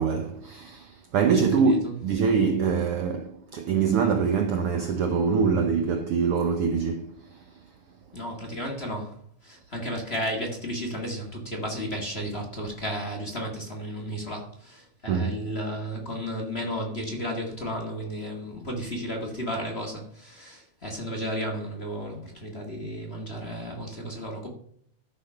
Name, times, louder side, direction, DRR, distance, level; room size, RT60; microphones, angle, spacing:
voice 1, 0.0-7.5 15.1-15.4, right 5 dB, 85° right, 1.2 m, -24 dB
voice 2, 8.1-9.2 9.4-24.5, equal, 25° left, 1.7 m, -33 dB
13.0 x 6.3 x 5.7 m
omnidirectional pair, 3.7 m